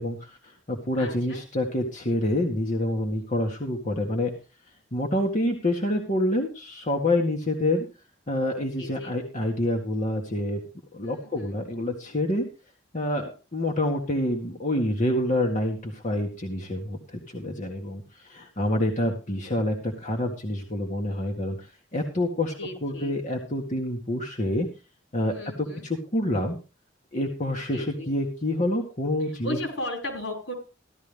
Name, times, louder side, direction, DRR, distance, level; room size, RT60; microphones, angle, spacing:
voice 1, 0.0-4.3 4.9-7.9 8.3-10.6 10.9-12.5 12.9-21.7 21.9-22.5 22.8-24.7 25.1-26.6 27.1-29.6, left 1 dB, 40° left, 1 dB, 1.9 m, -27 dB
voice 2, 1.0-1.4 8.8-9.1 11.0-11.5 22.6-23.2 25.3-25.9 27.7-28.1 29.4-30.5, left 1 dB, 75° left, 3 dB, 5.8 m, -35 dB
15.0 x 13.0 x 3.5 m, 0.32 s
head